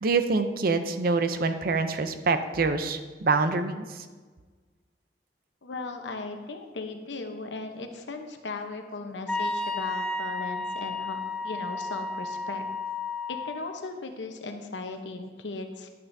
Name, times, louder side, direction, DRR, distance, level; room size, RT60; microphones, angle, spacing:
voice 1, 0.0-4.0, right 4 dB, 55° right, 9 dB, 0.5 m, -26 dB
voice 2, 5.6-12.6 13.3-15.9, left 3 dB, 80° left, 5 dB, 0.9 m, -37 dB
Wind instrument woodwind instrument, 9.3-13.7, left 3 dB, 5° left, 0.5 m, -32 dB
10.5 x 9.1 x 2.7 m, 1.4 s
head